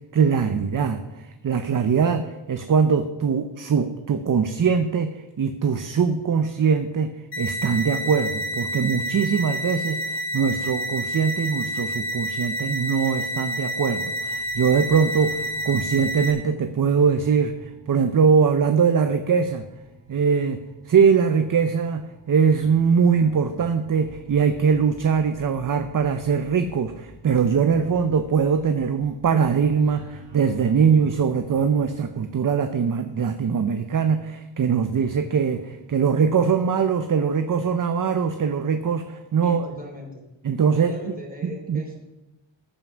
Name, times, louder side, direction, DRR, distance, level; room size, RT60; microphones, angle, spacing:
voice 1, 0.1-7.1 7.4-19.6 20.1-20.6 20.9-39.6 40.4-40.9 41.4-41.8, right 6 dB, 45° right, 8 dB, 0.7 m, -22 dB
sound 1, 7.3-16.3, equal, 55° left, 2.0 m, -29 dB
sound 2, 14.3-31.9, left 1 dB, 70° right, 2.6 m, -49 dB
voice 2, 39.4-40.2 40.8-41.9, right 1 dB, 20° right, 0 dB, 3.1 m, -39 dB
14.0 x 5.8 x 6.3 m, 1.0 s
wide cardioid pair, 115°, 45 cm